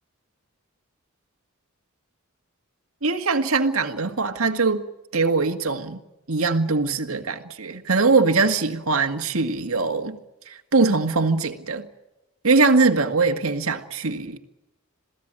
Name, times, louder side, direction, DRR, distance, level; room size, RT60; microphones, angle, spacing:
voice 1, 3.0-4.8 5.1-6.0 6.3-10.2 10.5-11.9 12.4-14.4, right 3 dB, 85° right, 5 dB, 1.9 m, -22 dB
27.5 x 17.5 x 8.9 m, 0.93 s
head